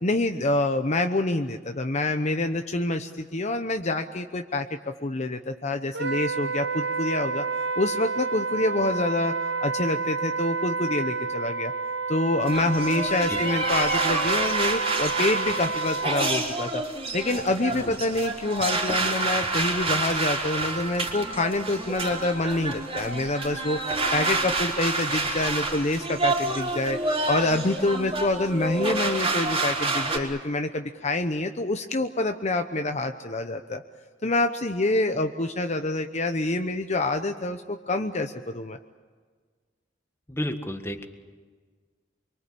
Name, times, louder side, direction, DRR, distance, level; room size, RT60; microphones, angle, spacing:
voice 1, 0.0-7.4 7.8-9.3 9.6-11.7 12.1-16.8 17.1-23.8 24.1-27.0 27.3-33.8 34.2-38.8, left 2 dB, 40° left, 6 dB, 1.0 m, -26 dB
Wind instrument woodwind instrument, 5.9-16.4, right 4 dB, 70° right, 0.9 m, -29 dB
sound 1, 12.5-30.2, right 3 dB, 30° right, 4.1 m, -28 dB
voice 2, 40.3-41.1, left 1 dB, 15° left, 6 dB, 1.7 m, -32 dB
26.0 x 24.0 x 8.6 m, 1.5 s
head